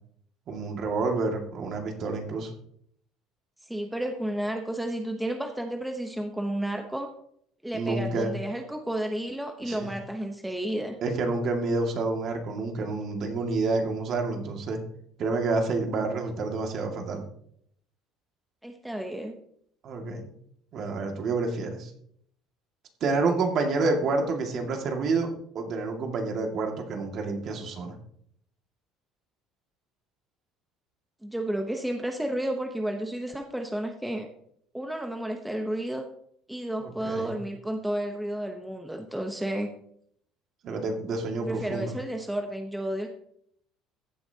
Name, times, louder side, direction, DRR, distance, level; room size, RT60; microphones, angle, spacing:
voice 1, 0.5-2.5 7.7-8.3 9.7-9.9 11.0-14.8 15.2-17.2 19.8-20.3 20.7-21.9 23.0-25.3 25.5-28.0 36.8-37.4 40.6-41.9, right 3 dB, 50° right, 3 dB, 2.0 m, -28 dB
voice 2, 3.7-7.1 7.6-11.0 18.6-19.3 31.2-34.3 34.7-36.0 36.5-39.7 41.4-43.1, right 1 dB, 5° right, 3 dB, 0.9 m, -32 dB
15.0 x 8.4 x 2.8 m, 0.68 s
cardioid pair, 130°, 0 cm